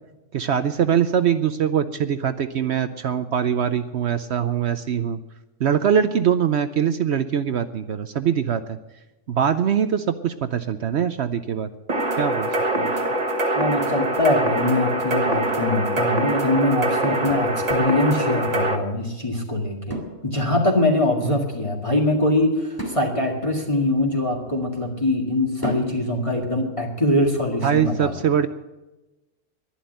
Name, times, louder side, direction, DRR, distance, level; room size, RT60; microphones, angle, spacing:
voice 1, 0.3-5.2 5.6-8.8 9.3-11.7 12.2-12.5 12.8-12.9 21.2-21.3 27.6-28.5, right 8 dB, 60° right, 11 dB, 0.7 m, -22 dB
sound 1, 11.9-18.8, right 1 dB, 25° right, 1.4 m, -23 dB
voice 2, 13.5-28.3, left 1 dB, 20° left, 0 dB, 2.1 m, -23 dB
sound 2, 19.9-20.8 22.8-24.8 25.6-26.4, right 1 dB, 10° right, 2.5 m, -36 dB
11.5 x 11.0 x 9.1 m, 1.0 s
omnidirectional pair, 1.6 m